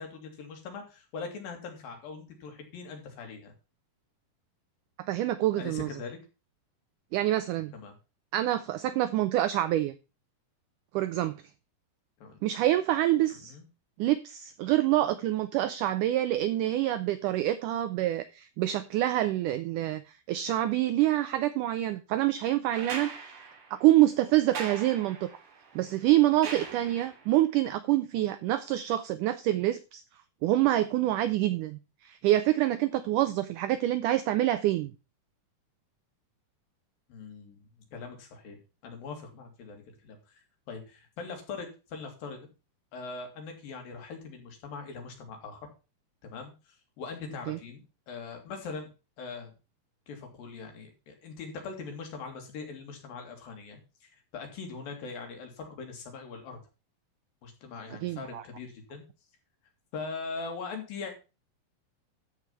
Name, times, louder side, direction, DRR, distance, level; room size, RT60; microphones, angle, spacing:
voice 1, 0.0-3.5 5.6-6.2 7.7-7.9 12.2-12.4 13.4-13.6 37.1-40.4 40.7-42.5 42.9-45.7 46.2-48.9 49.2-49.5 50.1-56.6 57.4-59.0 59.9-61.2, left 4 dB, 70° left, 4 dB, 4.0 m, -41 dB
voice 2, 5.1-5.9 7.1-7.7 8.3-9.9 10.9-11.3 12.4-13.5 14.0-20.0 20.3-23.1 23.7-25.3 25.7-30.0 30.4-34.9 47.5-47.6 58.0-58.4, right 14 dB, 90° right, 13 dB, 1.8 m, -26 dB
sound 1, 22.7-27.4 28.9-29.0, right 5 dB, 60° right, 3.6 m, -41 dB
13.5 x 4.8 x 5.7 m, 0.31 s
omnidirectional pair, 4.3 m